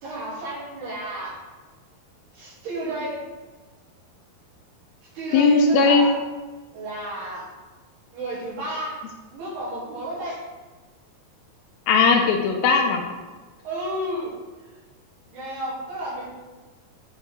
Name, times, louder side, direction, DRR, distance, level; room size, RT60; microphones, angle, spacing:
voice 1, 0.0-1.4 2.3-3.2 5.1-6.1 6.7-7.5 8.1-9.0 9.3-10.4 13.6-14.3 14.6-14.7 15.3-16.2, right 1 dB, 80° right, -8 dB, 4.2 m, -32 dB
voice 2, 5.3-6.1 11.9-13.0, left 4 dB, 80° left, 3 dB, 2.3 m, -18 dB
8.5 x 4.6 x 3.2 m, 1.3 s
omnidirectional pair, 4.5 m